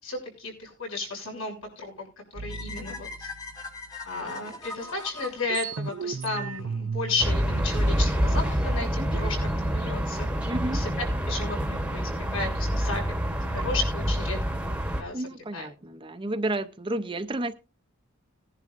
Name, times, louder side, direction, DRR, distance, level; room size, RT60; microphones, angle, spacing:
voice 1, 0.0-2.1 2.3-3.3 4.0-9.4 9.7-10.3 10.7-10.9 11.3-14.4 15.0-15.2 15.5-15.7, left 3 dB, 70° left, 6.5 m, -33 dB
sound 1, 2.3-4.3 4.8-4.9 5.1-8.7, right 5 dB, 65° right, 0.5 m, -37 dB
sound 2, 2.5-6.6, left 3 dB, 15° left, 1.3 m, -41 dB
sound 3, 7.2-15.0, equal, 5° right, 1.1 m, -27 dB
voice 2, 9.0-9.3 10.5-10.8 15.1-17.5, right 1 dB, 25° right, 0.6 m, -31 dB
20.5 x 10.5 x 2.6 m
head